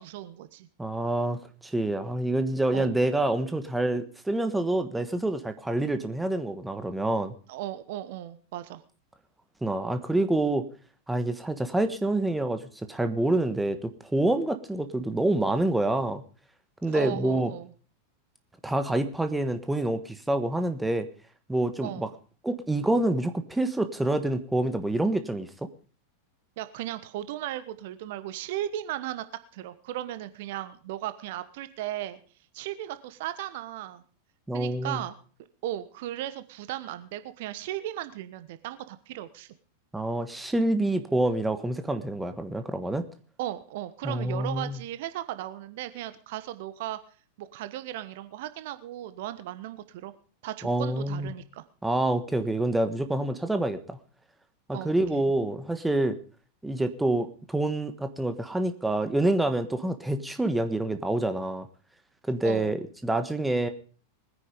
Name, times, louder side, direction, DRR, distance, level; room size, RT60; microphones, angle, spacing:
voice 1, 0.0-0.7 2.7-2.9 7.5-8.8 16.9-17.7 21.8-22.1 26.6-29.2 29.5-32.2 32.5-34.0 34.5-35.2 35.6-39.5 43.4-47.0 47.4-50.1 50.4-51.6 54.7-55.2 62.4-62.8, right 13 dB, 50° right, 13 dB, 1.1 m, -36 dB
voice 2, 0.8-7.3 9.6-10.7 11.1-16.2 16.8-17.5 18.6-21.1 21.5-22.1 22.4-25.7 34.5-35.0 39.9-43.0 44.0-44.8 50.6-51.3 51.8-54.0 54.7-56.2 56.6-61.7 62.3-63.7, right 1 dB, 5° right, 9 dB, 1.4 m, -27 dB
20.5 x 10.0 x 5.1 m, 0.41 s
figure-of-eight pair, 90°, 0 cm